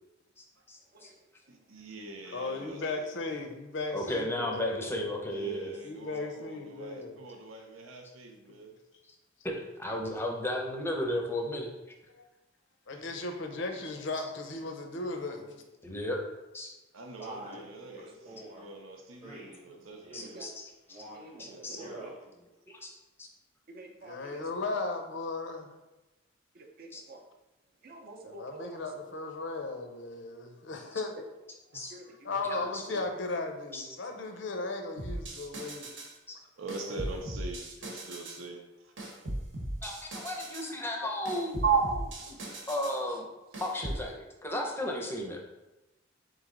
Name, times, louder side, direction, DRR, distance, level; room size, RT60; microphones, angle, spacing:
voice 1, 0.4-1.1 3.9-5.7 9.4-11.7 15.8-16.2 16.5-16.7 19.7-19.8 20.1-21.0 21.4-21.8 22.7-22.9 23.2-23.3 26.9-27.0 30.9-31.0 31.7-31.9 32.4-32.8 33.7-33.9 36.3-36.4 39.8-41.6 42.4-43.3 43.6-45.4, left 1 dB, 10° left, 0 dB, 0.6 m, -34 dB
voice 2, 1.5-3.0 5.2-8.8 12.9-13.2 16.9-20.5 21.4-22.1 31.7-31.8 32.1-32.2 32.9-33.0 36.6-39.2, right 2 dB, 90° right, 3 dB, 0.7 m, -45 dB
voice 3, 2.3-5.1 5.8-7.2 12.1-12.2 12.9-15.5 24.0-25.7 28.2-31.2 32.2-35.9, left 3 dB, 65° left, 5 dB, 0.6 m, -36 dB
Male speech man speaking, 17.2-17.7 18.3-18.7 19.2-19.6 20.0-20.5 20.9-21.3 21.7-22.2, right 1 dB, 30° right, 0.9 m, -46 dB
voice 4, 17.3-17.6 17.9-18.1 20.2-20.5 21.1-22.1 23.7-24.4 26.5-27.2 27.8-28.8 31.2-31.3 31.9-32.4 34.6-34.7 41.0-41.1 41.6-42.7 43.1-43.2, right 5 dB, 50° right, 3 dB, 0.6 m, -35 dB
sound 1, 35.0-36.2 36.7-38.4 39.0-40.7 41.2-43.0 43.5-44.0, right 1 dB, 65° right, 0.9 m, -38 dB
3.9 x 3.1 x 3.7 m, 1.0 s
head